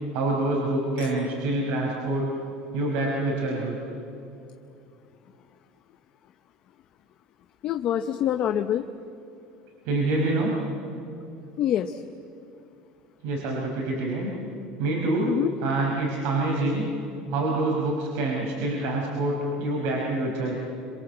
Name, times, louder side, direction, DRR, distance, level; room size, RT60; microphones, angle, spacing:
voice 1, 0.1-2.3 2.7-3.8 9.9-10.5 13.2-14.3 14.8-15.3 15.6-16.9 17.3-20.5, right 2 dB, 60° right, -2 dB, 5.2 m, -26 dB
voice 2, 7.6-8.9 11.6-12.0 15.3-15.5, left 10 dB, 35° left, 6 dB, 0.8 m, -25 dB
27.0 x 26.5 x 8.0 m, 2.7 s
cardioid pair, 175°, 3 cm